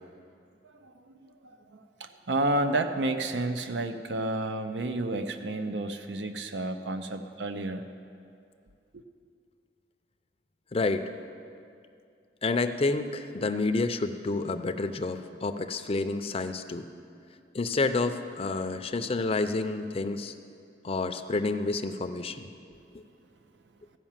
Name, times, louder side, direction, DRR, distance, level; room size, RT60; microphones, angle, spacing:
voice 1, 0.6-7.8 8.9-9.0, right 2 dB, 80° right, 8 dB, 0.6 m, -31 dB
voice 2, 10.7-11.1 12.4-16.9 17.5-20.3 20.8-22.5 22.9-23.0, left 3 dB, 35° left, 8 dB, 0.5 m, -29 dB
14.5 x 5.7 x 7.3 m, 2.4 s
head